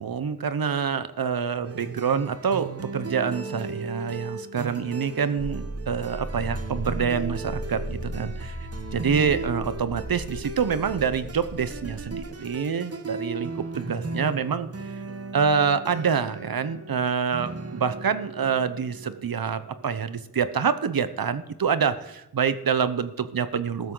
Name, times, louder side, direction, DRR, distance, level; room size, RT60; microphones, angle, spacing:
voice 1, 0.0-8.6 8.9-14.7 15.3-23.9, right 6 dB, 70° right, 12 dB, 0.9 m, -26 dB
sound 1, 1.6-21.0, right 3 dB, 40° right, 1.2 m, -37 dB
sound 2, 5.4-12.2, right 1 dB, 90° right, 5.4 m, -36 dB
14.5 x 12.5 x 3.9 m, 0.87 s
wide cardioid pair, 70°, 36 cm